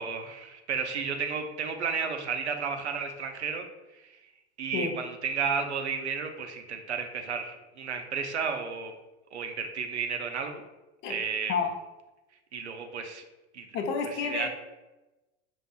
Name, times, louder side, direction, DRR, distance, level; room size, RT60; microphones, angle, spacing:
voice 1, 0.0-3.7 4.6-8.9 9.3-10.6 11.1-11.6 12.5-13.2 13.5-13.7 14.1-14.5, right 6 dB, 75° right, 5 dB, 0.5 m, -32 dB
voice 2, 13.7-14.5, left 5 dB, 35° left, 4 dB, 0.6 m, -29 dB
5.4 x 2.4 x 2.4 m, 1.1 s
figure-of-eight pair, 75°, 34 cm